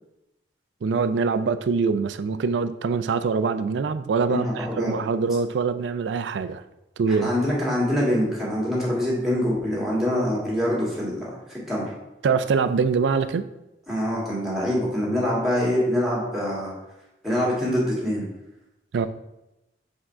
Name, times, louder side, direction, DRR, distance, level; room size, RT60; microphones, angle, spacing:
voice 1, 0.8-6.6 7.0-7.3 12.2-13.4 18.9-19.1, right 5 dB, 90° right, 13 dB, 0.4 m, -24 dB
voice 2, 4.3-4.9 7.1-11.9 13.9-16.7 17.2-18.3, left 1 dB, ahead, -5 dB, 1.7 m, -25 dB
4.7 x 3.7 x 5.6 m, 0.96 s
head